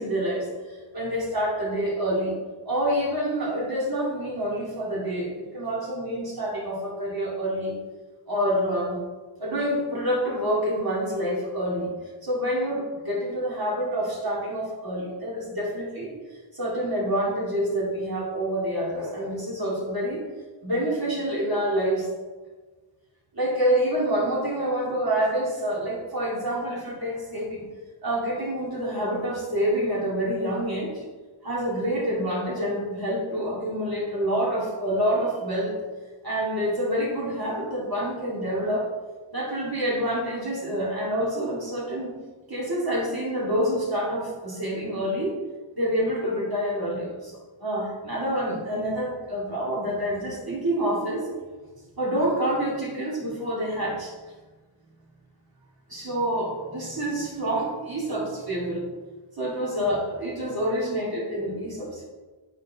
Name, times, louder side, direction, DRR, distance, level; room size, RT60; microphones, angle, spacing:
voice 1, 0.0-2.3 2.7-7.7 8.3-9.0 9.4-11.9 12.2-16.1 16.5-20.3 20.6-22.1 23.3-27.6 28.0-31.0 31.4-35.7 36.2-38.9 39.3-42.1 42.5-45.4 45.7-51.3 52.0-54.1 55.9-58.9 59.4-62.0, equal, 50° right, -6 dB, 2.3 m, -27 dB
8.6 x 4.5 x 3.5 m, 1.3 s
wide cardioid pair, 80°, 48 cm